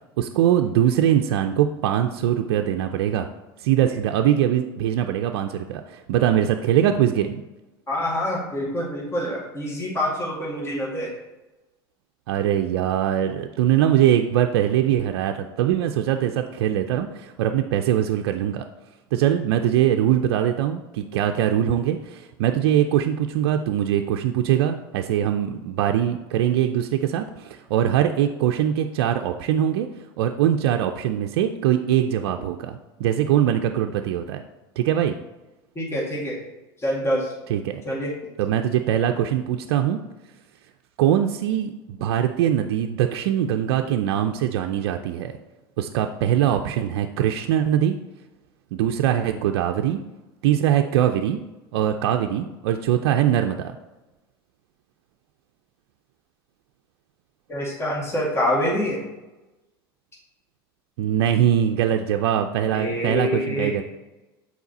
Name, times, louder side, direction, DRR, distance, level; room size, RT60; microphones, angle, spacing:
voice 1, 0.2-3.3 3.6-7.4 12.3-18.6 19.1-29.9 30.2-34.4 34.8-35.1 37.5-37.8 38.4-40.0 41.0-45.3 45.8-48.0 48.7-50.0 50.4-51.4 51.7-53.6 61.0-63.8, right 10 dB, 75° right, 5 dB, 0.4 m, -22 dB
voice 2, 7.9-11.1 35.8-36.4 36.8-37.3 37.8-38.1 57.5-59.0 62.7-63.7, left 1 dB, 20° left, -4 dB, 2.1 m, -26 dB
7.1 x 4.3 x 4.1 m, 1.1 s
hypercardioid pair, 90°, 13 cm